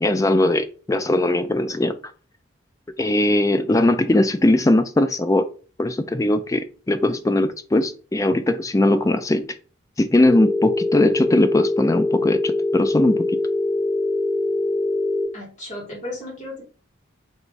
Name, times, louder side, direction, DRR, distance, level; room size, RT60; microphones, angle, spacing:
voice 1, 0.0-2.0 3.0-5.5 5.8-9.5 10.0-13.3, left 1 dB, 15° left, 10 dB, 0.3 m, -19 dB
Telephone, 10.2-15.2, left 2 dB, 15° right, 1.6 m, -23 dB
voice 2, 15.3-16.6, left 1 dB, 40° left, -3 dB, 1.9 m, -34 dB
3.4 x 3.0 x 3.9 m, 0.38 s
head